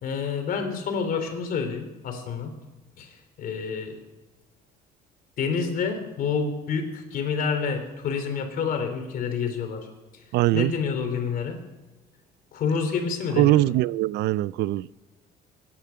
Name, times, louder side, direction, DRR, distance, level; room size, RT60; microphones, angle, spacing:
voice 1, 0.0-2.5 3.0-4.0 5.4-9.9 10.5-11.6 12.5-13.6, left 5 dB, 55° left, 3.2 m, -28 dB
voice 2, 10.3-10.7 13.4-14.9, right 16 dB, 70° right, 0.4 m, -22 dB
23.5 x 10.5 x 5.8 m
cardioid pair, 140°, 18 cm